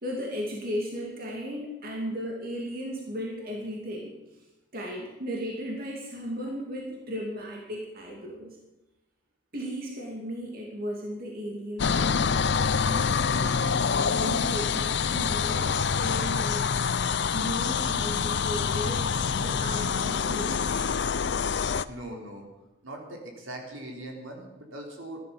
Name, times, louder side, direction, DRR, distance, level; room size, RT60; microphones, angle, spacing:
voice 1, 0.0-4.1 4.7-8.6 9.5-12.3 12.7-16.9 17.3-20.9, equal, 45° right, -1 dB, 2.6 m, -36 dB
sound 1, 11.8-21.9, left 6 dB, 55° left, 0.5 m, -26 dB
voice 2, 21.9-22.5 22.8-25.2, right 1 dB, 70° right, 1 dB, 3.7 m, -40 dB
15.0 x 12.0 x 7.0 m, 1.0 s
head